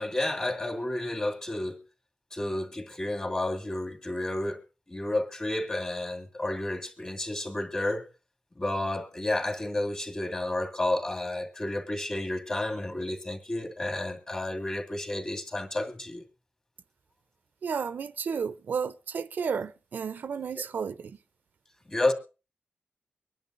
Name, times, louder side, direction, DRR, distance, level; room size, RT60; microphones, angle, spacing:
voice 1, 0.0-1.8 2.3-4.6 4.9-8.1 8.6-16.2 21.9-22.1, left 1 dB, 25° left, 2.3 m, -31 dB
voice 2, 17.6-21.2, right 6 dB, 65° right, 0.6 m, -32 dB
24.0 x 11.0 x 2.6 m
wide cardioid pair, 130°, 3 cm